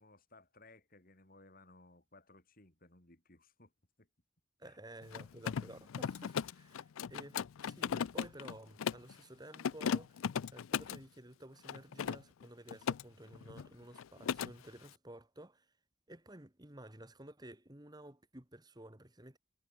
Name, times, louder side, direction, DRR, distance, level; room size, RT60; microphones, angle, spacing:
voice 1, 0.0-3.7 4.0-4.1 4.6-4.8, left 2 dB, 45° left, 4.1 m, -61 dB
voice 2, 4.6-15.7 16.1-19.4, right 1 dB, 20° right, 1.6 m, -53 dB
Mechanisms, 5.0-9.1 9.5-11.0 11.6-13.0 13.3-13.7 13.9-14.5, left 7 dB, 80° left, 0.4 m, -37 dB
head